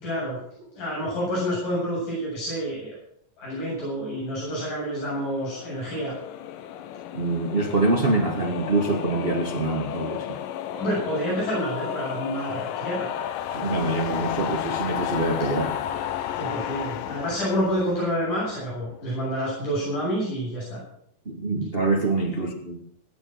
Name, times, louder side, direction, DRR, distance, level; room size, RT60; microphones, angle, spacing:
voice 1, 0.0-0.4 0.7-2.9 3.4-6.2 10.7-13.1 16.3-20.8, equal, 70° left, 9.6 m, -28 dB
sound 1, 4.6-19.0, left 10 dB, 85° left, 2.6 m, -33 dB
voice 2, 7.1-10.4 13.5-15.8 21.2-22.8, right 2 dB, 85° right, 0.5 m, -25 dB
19.0 x 9.5 x 6.5 m
omnidirectional pair, 3.8 m